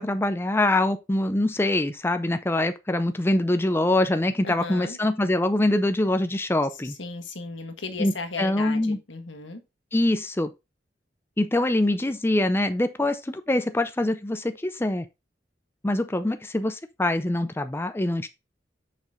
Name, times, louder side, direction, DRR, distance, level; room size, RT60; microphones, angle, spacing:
voice 1, 0.0-6.9 8.0-9.0 9.9-10.5 11.4-15.0 15.8-18.3, left 1 dB, 15° left, 0.5 m, -24 dB
voice 2, 4.4-5.0 7.0-9.6, left 3 dB, 85° left, 1.5 m, -35 dB
6.6 x 5.2 x 3.7 m
head